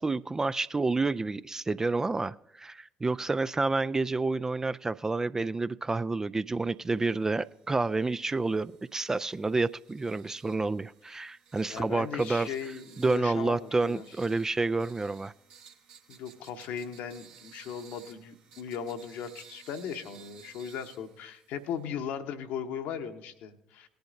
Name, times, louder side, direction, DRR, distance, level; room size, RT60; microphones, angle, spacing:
voice 1, 0.0-12.5 13.0-15.3, right 3 dB, 20° right, 15 dB, 0.3 m, -29 dB
sound 1, 7.0-21.9, right 7 dB, 60° right, 1.4 m, -57 dB
voice 2, 11.7-14.0 16.1-23.9, left 7 dB, 60° left, 8 dB, 0.9 m, -38 dB
18.5 x 10.5 x 2.6 m, 0.80 s
figure-of-eight pair, 55°, 3 cm